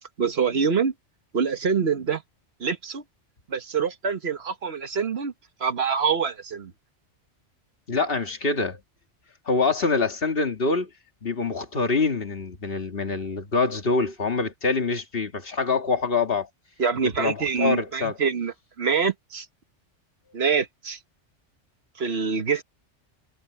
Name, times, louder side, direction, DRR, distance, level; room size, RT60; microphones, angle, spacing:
voice 1, 0.2-0.9 1.3-2.2 2.6-3.0 3.5-5.3 5.6-6.7 16.8-19.4 20.3-21.0 22.0-22.6, right 6 dB, 60° right, 1.5 m, -25 dB
voice 2, 7.9-8.8 9.5-10.9 11.2-16.5 17.2-18.2, left 4 dB, 50° left, 2.1 m, -25 dB
omnidirectional pair, 1.2 m